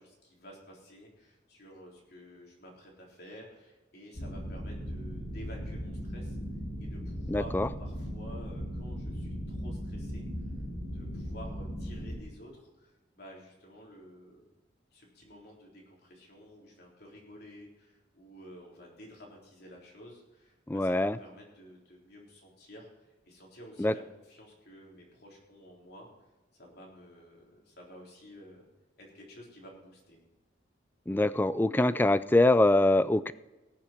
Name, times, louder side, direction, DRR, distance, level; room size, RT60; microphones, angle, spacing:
voice 1, 0.0-6.4 6.8-10.3 10.9-14.5 14.9-26.1 26.5-28.7 29.0-30.2, equal, 55° left, -2 dB, 3.8 m, -51 dB
sound 1, 4.1-12.2, equal, 85° left, 3.2 m, -38 dB
voice 2, 7.3-7.7 20.7-21.2 23.8-23.9 31.1-33.3, left 2 dB, 10° left, 16 dB, 0.3 m, -24 dB
19.0 x 7.3 x 4.4 m, 1.1 s
head